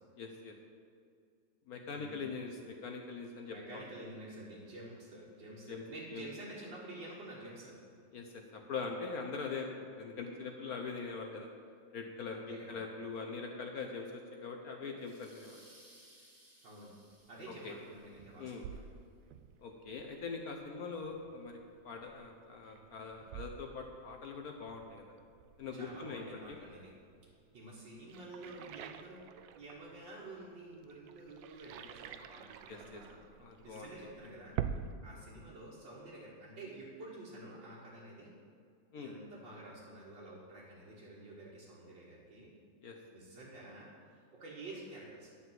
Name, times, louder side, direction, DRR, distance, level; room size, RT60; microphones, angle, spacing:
voice 1, 0.2-0.5 1.7-3.8 5.7-5.8 6.1-6.3 8.1-11.5 11.9-15.6 17.6-17.7 18.4-18.6 19.6-21.6 21.8-25.0 25.6-26.4 32.7-33.0 33.4-33.9 38.9-39.1 42.8-42.9, left 4 dB, 60° left, 3 dB, 1.2 m, -42 dB
voice 2, 1.9-2.3 3.5-7.8 12.3-12.8 16.6-16.9 17.3-18.8 22.6-22.7 25.7-26.9 27.5-29.2 29.5-33.2 33.6-34.6 35.0-38.3 39.0-42.5 43.1-45.3, right 1 dB, 70° right, -8 dB, 2.3 m, -49 dB
sound 1, 15.0-18.4, right 1 dB, 10° right, 1.9 m, -62 dB
sound 2, 17.1-34.9, right 9 dB, 90° right, 1.3 m, -48 dB
9.8 x 5.8 x 7.5 m, 2.3 s
omnidirectional pair, 2.0 m